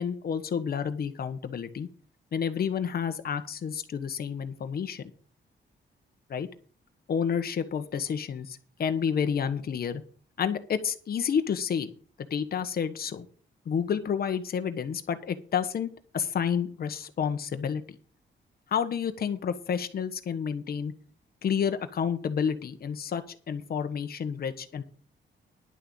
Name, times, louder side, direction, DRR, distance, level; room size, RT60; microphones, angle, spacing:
voice 1, 0.0-1.9 2.3-5.1 6.3-6.5 7.1-10.0 10.4-11.9 12.3-13.3 13.6-18.0 18.7-20.9 21.4-24.8, left 7 dB, 50° left, 9 dB, 1.3 m, -30 dB
11.0 x 6.7 x 7.0 m, 0.42 s
wide cardioid pair, 150°, 19 cm